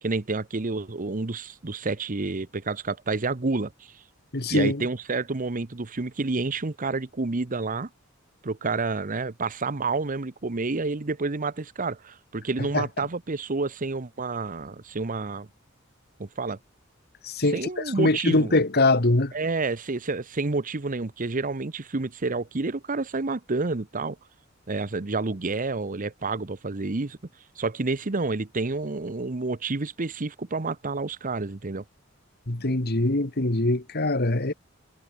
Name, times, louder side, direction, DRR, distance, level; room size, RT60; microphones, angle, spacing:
voice 1, 0.0-3.9 4.5-7.9 8.4-15.5 16.2-16.6 17.5-18.5 19.3-24.2 24.7-27.2 27.6-31.8, right 3 dB, 40° right, 0.9 m, -29 dB
voice 2, 4.3-4.8 12.7-12.8 17.2-17.6 18.0-19.3 32.5-34.5, left 2 dB, 50° left, 2.0 m, -23 dB
head